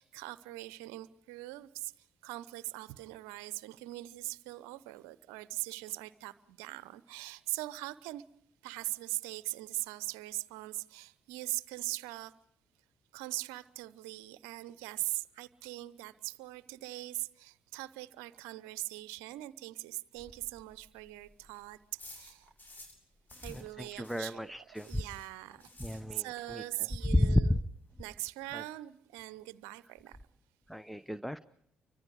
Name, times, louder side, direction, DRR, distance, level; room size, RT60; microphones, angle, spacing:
voice 1, 0.0-1.9 2.2-8.2 8.6-12.3 13.1-21.8 22.1-22.5 23.4-24.4 24.8-27.5 28.0-30.2, right 18 dB, 70° right, 0.8 m, -41 dB
sound 1, 20.1-23.0 23.3-26.5 26.7-26.8 27.2-27.3 27.4-27.9, left 2 dB, 40° left, 7.1 m, -54 dB
voice 2, 23.3-25.0 25.8-26.6 27.0-27.6 28.5-28.6 30.7-31.4, left 1 dB, ahead, 0.8 m, -31 dB
30.0 x 24.5 x 4.8 m
figure-of-eight pair, 45°, 5 cm